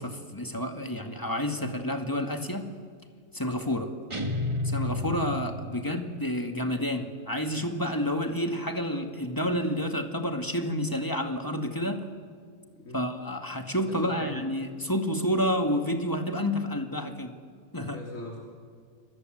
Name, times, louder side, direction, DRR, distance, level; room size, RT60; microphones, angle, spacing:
voice 1, 0.0-2.7 3.3-3.9 4.6-12.1 12.9-17.3 17.7-18.0, equal, 15° left, 4 dB, 2.2 m, -29 dB
sound 1, 4.1-6.2, left 2 dB, 25° right, 1.5 m, -31 dB
voice 2, 12.7-13.1 13.9-14.3 17.9-18.4, equal, 85° left, -1 dB, 3.7 m, -41 dB
29.0 x 24.0 x 7.9 m, 2.1 s
omnidirectional pair, 1.3 m